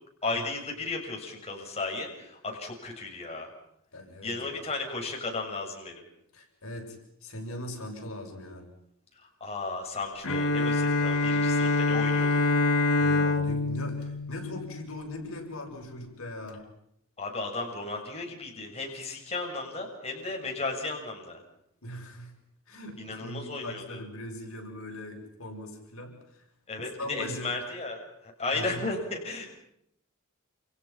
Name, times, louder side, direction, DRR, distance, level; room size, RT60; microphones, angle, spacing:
voice 1, 0.2-3.5 4.2-6.0 9.4-12.4 17.2-21.4 23.0-24.0 26.7-29.5, left 3 dB, 30° left, 0 dB, 7.0 m, -34 dB
voice 2, 3.9-4.6 6.3-7.0 7.2-8.7 12.9-16.7 21.8-22.3 22.7-26.4 27.0-27.5 28.5-28.8, left 1 dB, 70° left, 2 dB, 7.2 m, -40 dB
Bowed string instrument, 10.2-15.1, left 3 dB, 90° left, 2.7 m, -25 dB
29.5 x 29.0 x 5.9 m, 0.75 s
head